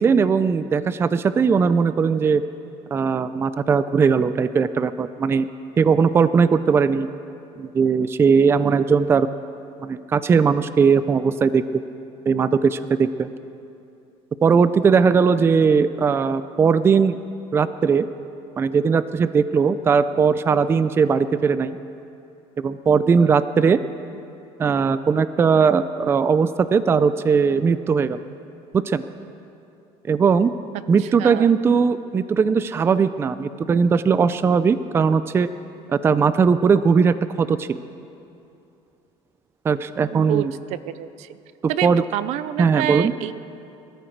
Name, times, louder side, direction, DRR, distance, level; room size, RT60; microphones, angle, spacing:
voice 1, 0.0-2.4 2.9-5.5 5.8-7.1 7.6-9.3 9.8-11.6 12.3-13.3 14.4-17.2 17.5-18.1 18.6-21.8 22.6-23.8 24.6-28.2 28.9-29.0 30.1-30.5 30.9-35.5 35.9-37.8 39.6-40.5 41.8-42.0 42.6-43.1, right 5 dB, 20° right, 14 dB, 0.4 m, -19 dB
voice 2, 40.1-41.3 41.7-43.3, right 13 dB, 70° right, 15 dB, 0.5 m, -28 dB
22.0 x 13.5 x 4.5 m, 2.7 s
cardioid pair, 145°, 12 cm